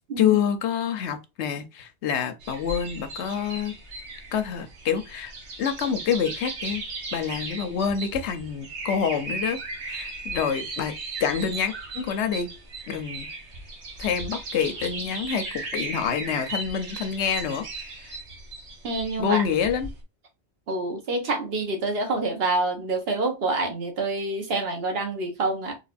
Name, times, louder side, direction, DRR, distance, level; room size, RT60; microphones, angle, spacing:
voice 1, 0.2-3.8 4.3-5.3 5.6-6.8 7.1-12.5 12.9-13.3 14.0-18.2 19.2-19.9, left 7 dB, 90° left, 1.0 m, -27 dB
sound 1, 2.4-20.0, right 3 dB, 80° right, 1.3 m, -37 dB
voice 2, 18.8-19.4 20.7-25.8, right 2 dB, 65° right, 1.3 m, -27 dB
3.9 x 2.8 x 2.5 m
omnidirectional pair, 1.1 m